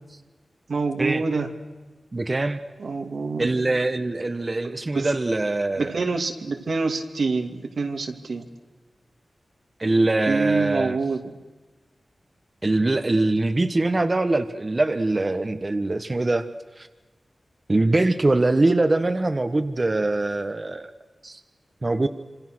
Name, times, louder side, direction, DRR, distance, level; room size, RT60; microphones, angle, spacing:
voice 1, 0.7-1.5 2.8-3.5 4.6-5.1 5.8-8.5 10.3-11.3, right 4 dB, 80° right, 4 dB, 2.6 m, -26 dB
voice 2, 2.1-2.6 3.4-5.9 9.8-11.0 12.6-16.4 16.8-16.9 17.7-20.9 21.2-21.4 21.8-22.1, right 2 dB, 35° right, 8 dB, 1.3 m, -23 dB
27.0 x 26.5 x 6.3 m, 1.3 s
wide cardioid pair, 65°, 0 cm